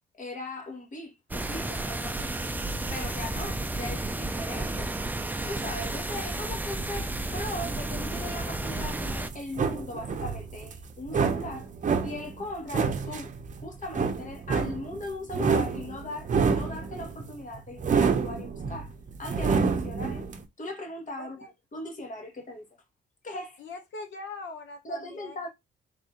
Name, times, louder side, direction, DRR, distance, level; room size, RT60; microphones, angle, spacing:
voice 1, 0.1-2.3 2.9-4.9 5.4-11.7 12.0-13.3 13.6-18.9 19.2-20.3 20.6-21.4 21.7-22.7 23.2-23.6 24.8-25.5, left 2 dB, 40° left, 1.4 m, -38 dB
sound 1, 1.3-9.3, right 2 dB, 10° right, 0.4 m, -32 dB
sound 2, 8.7-20.4, right 5 dB, 40° right, 0.7 m, -28 dB
voice 2, 21.2-21.5 23.6-25.4, left 3 dB, 65° left, 1.0 m, -41 dB
3.4 x 2.7 x 3.7 m
cardioid pair, 90°, 20 cm